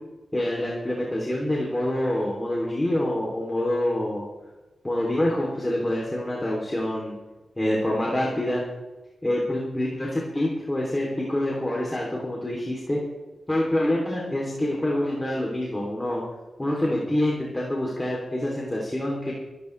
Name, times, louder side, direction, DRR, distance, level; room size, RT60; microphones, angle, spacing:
voice 1, 0.3-4.2 4.8-7.2 7.6-8.6 9.2-13.0 13.5-16.2 16.6-19.3, left 1 dB, 15° left, -3 dB, 3.0 m, -26 dB
25.0 x 11.5 x 3.3 m, 1.1 s
cardioid pair, 85°, 0 cm